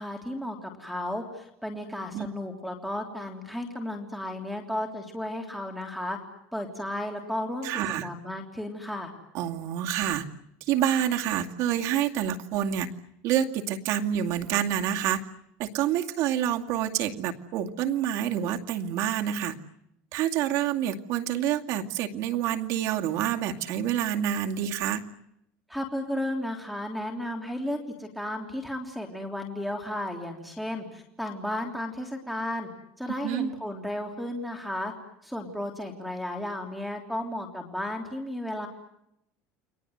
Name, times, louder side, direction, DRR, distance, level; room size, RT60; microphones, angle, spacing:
voice 1, 0.0-6.2 6.5-7.7 8.0-9.1 25.7-32.7 33.0-34.9 35.2-38.7, left 1 dB, ahead, 3 dB, 3.3 m, -34 dB
voice 2, 7.6-8.1 9.3-10.2 10.6-12.9 13.2-15.2 15.6-19.5 20.1-25.0 33.2-33.5, right 10 dB, 55° right, 4 dB, 2.3 m, -27 dB
30.0 x 23.0 x 8.0 m, 0.80 s
cardioid pair, 150°, 6 cm